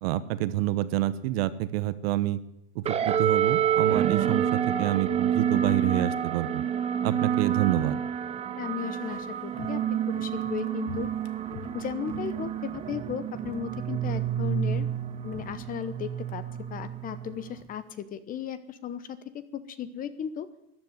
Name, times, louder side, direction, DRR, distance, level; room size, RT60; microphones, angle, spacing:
voice 1, 0.0-2.4 2.7-6.6 7.0-8.0, right 14 dB, 60° right, 14 dB, 1.1 m, -28 dB
sound 1, 2.8-17.6, right 9 dB, 20° right, 0.8 m, -29 dB
voice 2, 8.6-9.8 10.1-11.1 11.7-14.9 15.2-16.4 16.7-20.5, left 8 dB, 25° left, 14 dB, 0.9 m, -36 dB
Walk footsteps, 8.8-13.1 13.4-13.8 14.0-16.4 16.7-16.8, left 9 dB, 50° left, 1.2 m, -46 dB
14.0 x 10.5 x 9.5 m, 0.80 s
supercardioid pair, 150°, 33 cm